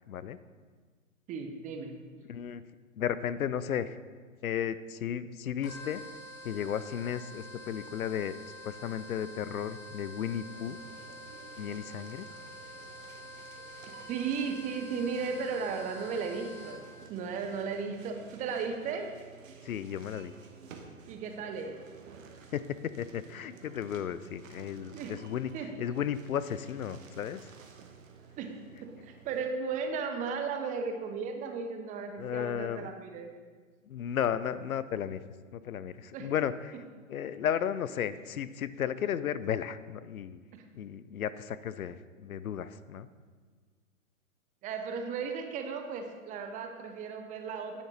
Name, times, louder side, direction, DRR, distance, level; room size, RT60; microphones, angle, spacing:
voice 1, 0.1-0.4 2.3-2.6 3.0-4.0 4.4-6.0 6.4-8.4 8.6-10.8 11.6-12.3 19.6-20.3 22.5-27.5 32.2-32.9 33.8-35.2 35.5-36.8 37.1-40.4 40.7-43.1, left 9 dB, 90° left, 15 dB, 0.5 m, -34 dB
voice 2, 1.3-2.0 14.1-16.8 17.1-19.1 21.1-21.8 24.9-25.2 25.5-25.7 28.4-28.5 28.8-33.3 36.1-36.3 40.5-40.6 44.6-47.8, right 5 dB, 20° right, 5 dB, 0.6 m, -35 dB
sound 1, 5.6-17.0, left 1 dB, 30° left, 2.6 m, -47 dB
sound 2, 10.4-29.5, right 5 dB, 70° right, 1.1 m, -53 dB
9.8 x 7.2 x 3.2 m, 1.5 s
hypercardioid pair, 115°, 41 cm